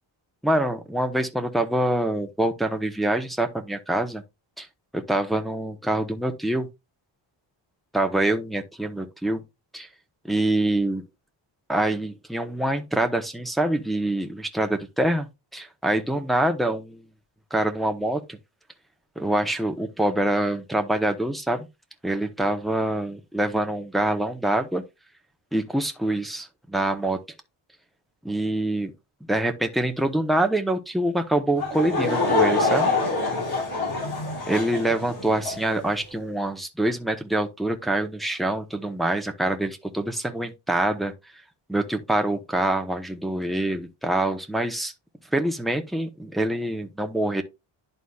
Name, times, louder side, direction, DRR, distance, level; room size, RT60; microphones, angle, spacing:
voice 1, 0.4-4.2 4.6-4.7 4.9-6.7 7.9-9.4 9.7-9.9 10.2-11.0 11.7-17.0 17.5-18.4 19.2-21.7 22.0-24.8 25.5-27.2 28.2-28.9 29.3-32.9 34.5-41.1 41.7-44.9 45.3-47.4, right 1 dB, ahead, 0.9 m, -25 dB
Laughter / Crowd, 31.6-35.8, left 3 dB, 45° left, 4.4 m, -25 dB
11.5 x 4.1 x 2.4 m
cardioid pair, 110°, 50 cm